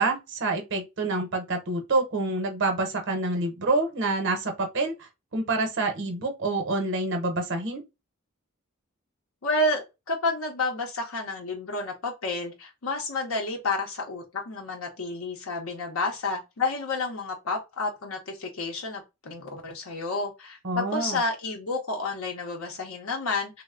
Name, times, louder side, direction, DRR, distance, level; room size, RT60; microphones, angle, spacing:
voice 1, 0.0-7.8 20.6-21.2, right 2 dB, 60° right, 0.8 m, -27 dB
voice 2, 9.4-23.6, left 2 dB, 75° left, 0.7 m, -30 dB
3.1 x 2.1 x 3.5 m
head